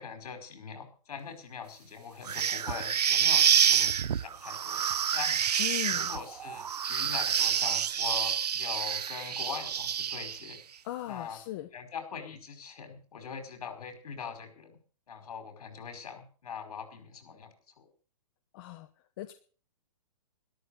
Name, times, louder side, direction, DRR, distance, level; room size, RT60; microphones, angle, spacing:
voice 1, 0.0-5.4 5.9-10.6 11.1-11.4 11.7-14.8 15.1-17.9, left 6 dB, 65° left, 7 dB, 5.3 m, -42 dB
sound 1, 2.3-10.6, right 8 dB, 90° right, 0.7 m, -28 dB
voice 2, 5.6-6.1 10.8-11.7 18.5-18.9 19.2-19.3, left 14 dB, 35° left, 7 dB, 1.1 m, -37 dB
13.0 x 13.0 x 6.6 m, 0.41 s
hypercardioid pair, 155°, 20 cm